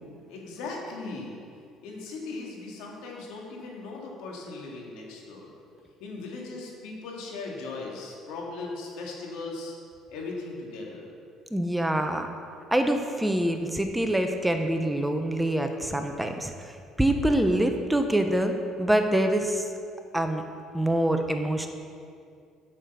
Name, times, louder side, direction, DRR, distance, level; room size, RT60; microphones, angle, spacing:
voice 1, 0.3-1.4 1.8-5.5 6.0-9.8 10.1-11.1, left 3 dB, 80° left, -1 dB, 2.1 m, -38 dB
voice 2, 11.5-12.3 12.7-19.6 20.1-20.4 20.7-21.7, right 1 dB, 5° right, 5 dB, 0.8 m, -25 dB
7.5 x 6.5 x 6.9 m, 2.3 s
supercardioid pair, 85°, 0 cm